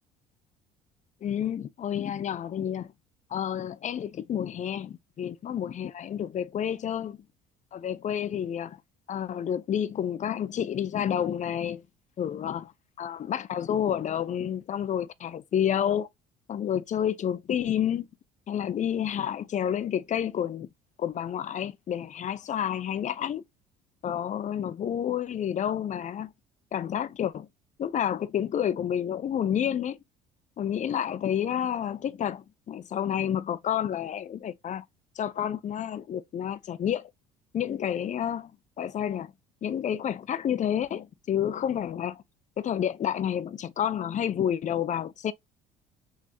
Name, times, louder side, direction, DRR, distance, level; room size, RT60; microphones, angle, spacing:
voice 1, 1.2-2.9 3.3-7.2 7.7-8.8 9.1-11.8 12.2-12.7 13.0-16.1 16.5-18.1 18.5-20.7 21.0-23.4 24.0-26.3 26.7-27.5 27.8-30.0 30.6-34.8 35.2-37.1 37.5-38.5 38.8-39.3 39.6-42.2 42.6-45.3, left 9 dB, 40° left, 0.6 m, -29 dB
6.1 x 3.1 x 2.7 m
hypercardioid pair, 65°, 19 cm